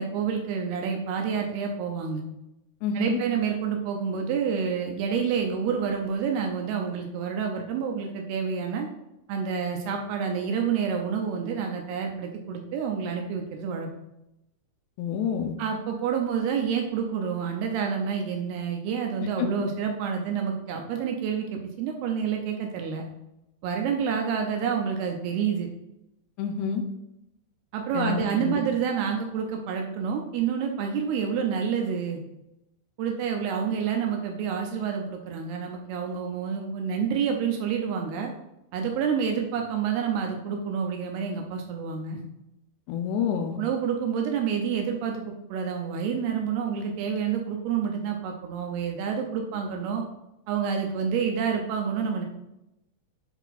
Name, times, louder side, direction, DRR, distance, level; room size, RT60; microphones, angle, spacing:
voice 1, 0.0-2.2 3.0-8.9 9.3-13.9 15.6-23.0 23.6-25.7 27.7-32.2 33.0-38.3 38.7-42.2 43.6-50.0 50.5-52.2, right 7 dB, 80° right, 2 dB, 2.3 m, -28 dB
voice 2, 2.8-3.2 15.0-15.6 19.2-19.5 26.4-26.8 27.9-28.6 42.9-43.6, left 7 dB, 80° left, 5 dB, 2.6 m, -28 dB
7.8 x 4.6 x 4.0 m, 0.87 s
omnidirectional pair, 5.5 m